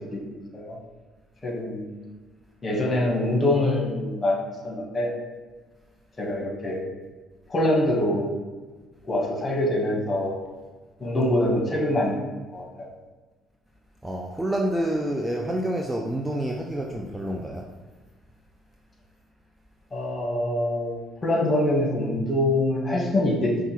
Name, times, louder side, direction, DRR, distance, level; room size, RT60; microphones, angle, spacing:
voice 1, 1.4-1.9 2.6-5.1 6.2-6.8 7.5-8.3 9.1-10.3 11.0-12.2 12.5-12.9 19.9-23.6, left 1 dB, 30° left, -2 dB, 1.5 m, -24 dB
voice 2, 14.0-17.6, right 1 dB, 10° right, -1 dB, 0.5 m, -28 dB
5.4 x 2.4 x 3.2 m, 1.3 s
hypercardioid pair, 50°, 0 cm